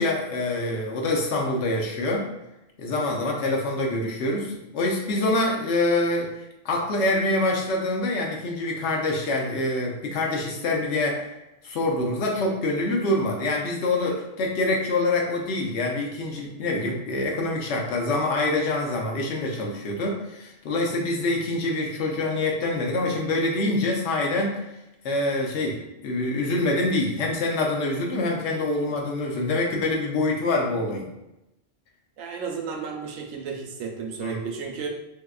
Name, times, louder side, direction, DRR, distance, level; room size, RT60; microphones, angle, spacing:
voice 1, 0.0-2.3 2.8-6.3 6.6-11.2 11.6-24.6 25.0-31.1 34.2-34.4, left 2 dB, 70° left, -1 dB, 0.9 m, -25 dB
voice 2, 32.2-34.9, right 5 dB, 85° right, 2 dB, 1.0 m, -33 dB
3.6 x 2.7 x 2.2 m, 0.91 s
omnidirectional pair, 1.3 m